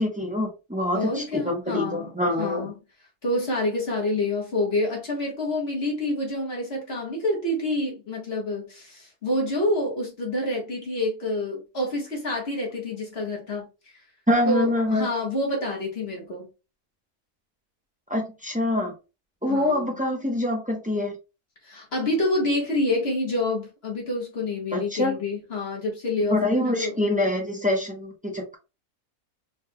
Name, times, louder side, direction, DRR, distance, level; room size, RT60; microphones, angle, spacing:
voice 1, 0.0-2.7 14.3-15.1 18.1-18.9 19.4-21.2 24.7-25.1 26.3-28.6, left 1 dB, 10° right, 0.4 m, -25 dB
voice 2, 0.9-2.7 3.2-13.7 14.5-16.5 19.5-20.0 21.6-27.0, left 1 dB, 45° left, 1.5 m, -27 dB
4.1 x 3.3 x 2.2 m
omnidirectional pair, 1.6 m